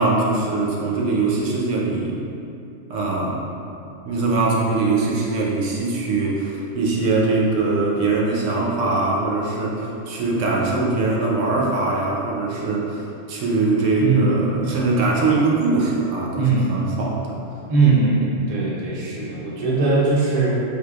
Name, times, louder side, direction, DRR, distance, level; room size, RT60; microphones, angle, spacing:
voice 1, 0.0-2.2 2.9-3.4 4.1-17.4, right 3 dB, 75° right, -3 dB, 0.9 m, -22 dB
voice 2, 14.0-14.7 16.4-16.7 17.7-20.6, right 3 dB, 50° right, -6 dB, 0.4 m, -20 dB
4.4 x 2.3 x 2.3 m, 2.6 s
omnidirectional pair, 1.3 m